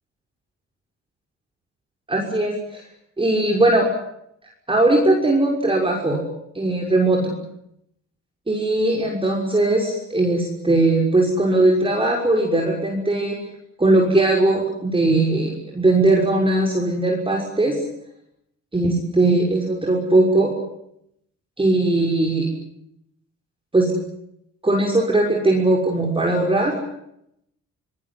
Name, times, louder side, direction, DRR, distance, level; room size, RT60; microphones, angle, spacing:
voice 1, 2.1-2.8 3.2-3.9 4.7-6.2 6.5-7.2 8.5-13.4 13.8-17.8 18.7-20.5 21.6-22.5 23.7-23.9 24.6-26.7, right 2 dB, 15° right, -1 dB, 6.1 m, -19 dB
25.0 x 20.5 x 9.6 m, 0.77 s
cardioid pair, 90°, 30 cm